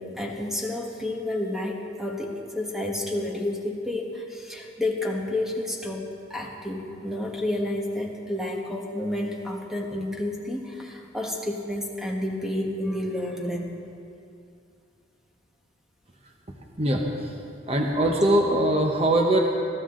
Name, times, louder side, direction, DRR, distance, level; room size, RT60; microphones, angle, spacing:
voice 1, 0.0-13.7, left 1 dB, ahead, 0 dB, 1.4 m, -30 dB
voice 2, 16.8-17.3 17.7-19.4, right 1 dB, 30° right, 1 dB, 1.0 m, -22 dB
20.5 x 14.0 x 3.8 m, 2.5 s
head